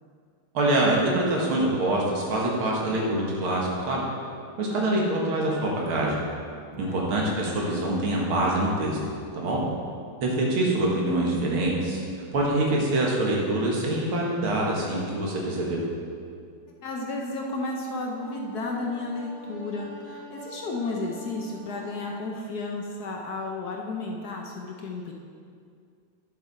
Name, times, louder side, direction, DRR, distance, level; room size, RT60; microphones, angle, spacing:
voice 1, 0.5-4.0 4.6-6.2 6.8-9.0 9.3-9.6 10.2-12.0 12.3-15.8, right 1 dB, 85° right, -3 dB, 2.4 m, -25 dB
voice 2, 4.7-5.2 6.7-7.1 16.8-25.1, left 2 dB, 60° left, 0 dB, 1.2 m, -33 dB
Wind instrument woodwind instrument, 18.1-22.4, right 1 dB, 35° right, 2.8 m, -46 dB
10.0 x 7.5 x 4.2 m, 2.3 s
omnidirectional pair, 2.2 m